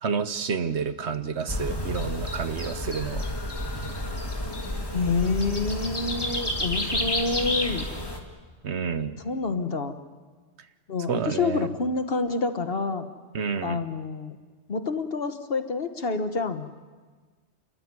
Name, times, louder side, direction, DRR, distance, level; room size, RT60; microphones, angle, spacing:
voice 1, 0.0-3.2 6.9-7.0 8.6-9.2 11.1-11.7 13.3-13.8, right 6 dB, 65° right, 11 dB, 1.2 m, -29 dB
sound 1, 1.5-8.2, left 1 dB, 20° left, 2.1 m, -30 dB
voice 2, 4.9-7.8 9.2-10.0 10.9-13.1 13.6-14.4 14.7-16.7, left 4 dB, 55° left, 9 dB, 1.4 m, -28 dB
29.0 x 13.5 x 9.6 m, 1.4 s
omnidirectional pair, 1.3 m